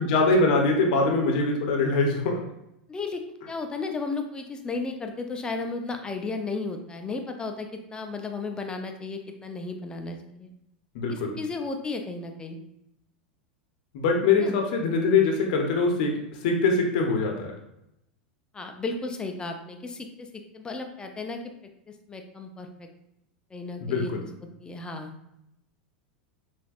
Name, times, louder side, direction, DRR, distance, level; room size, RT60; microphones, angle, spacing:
voice 1, 0.0-2.4 10.9-11.4 13.9-16.1 16.4-17.5 23.8-24.2, left 3 dB, 60° left, 2 dB, 0.8 m, -23 dB
voice 2, 2.9-10.5 11.1-12.6 14.4-14.6 18.5-20.3 20.5-21.4 22.1-22.9 23.5-24.1 24.6-25.1, left 3 dB, 15° left, 5 dB, 0.6 m, -34 dB
5.7 x 2.6 x 2.4 m, 0.82 s
figure-of-eight pair, 90°, 5 cm